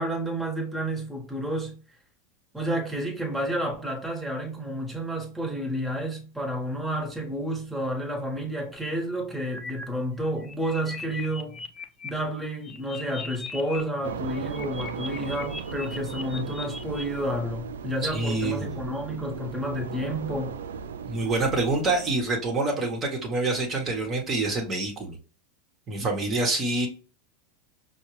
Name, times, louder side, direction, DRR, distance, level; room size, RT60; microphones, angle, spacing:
voice 1, 0.0-1.7 2.5-11.6 12.0-20.5, right 1 dB, 5° right, 1.4 m, -30 dB
sound 1, 9.4-9.8 10.2-12.1 12.4-13.8 14.1-17.0, left 3 dB, 15° left, 0.7 m, -39 dB
sound 2, 14.0-22.1, right 6 dB, 75° right, 0.4 m, -37 dB
voice 2, 18.0-18.7 21.0-25.2 25.9-26.9, right 2 dB, 30° right, 1.2 m, -26 dB
5.5 x 2.3 x 3.1 m
hypercardioid pair, 90°, 0 cm